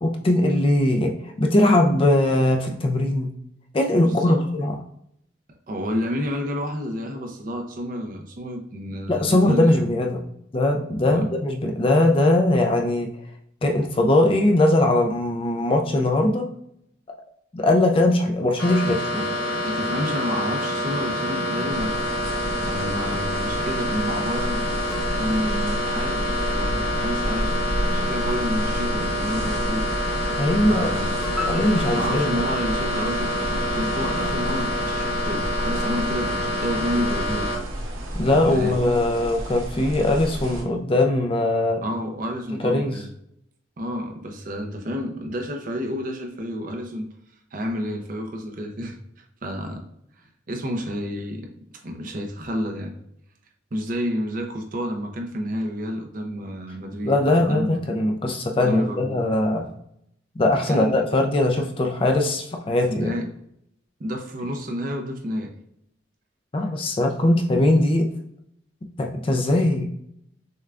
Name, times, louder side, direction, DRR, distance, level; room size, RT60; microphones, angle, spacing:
voice 1, 0.0-3.3 3.7-4.7 9.1-10.2 10.5-13.1 13.6-16.5 17.5-19.0 30.4-30.9 31.5-32.4 38.2-41.8 42.6-43.0 57.0-59.6 60.4-63.1 66.5-68.1 69.0-69.9, left 1 dB, 25° left, 2 dB, 0.3 m, -20 dB
voice 2, 3.9-4.4 5.7-9.8 11.1-11.2 18.8-19.3 19.6-22.1 22.6-24.6 25.1-27.5 27.9-29.9 30.5-31.2 31.9-37.5 38.3-38.8 41.8-43.1 43.8-47.1 47.5-49.0 49.4-49.8 50.5-51.5 51.8-52.9 53.7-57.8 58.6-59.2 60.7-61.1 62.9-63.2 64.0-65.5, equal, 40° right, 3 dB, 0.5 m, -30 dB
sound 1, 18.6-37.5, left 1 dB, 60° left, 1.4 m, -27 dB
sound 2, 21.7-40.6, equal, 90° right, 0.9 m, -31 dB
sound 3, 31.4-33.8, left 3 dB, 5° left, 0.7 m, -36 dB
6.5 x 2.2 x 2.4 m, 0.74 s
head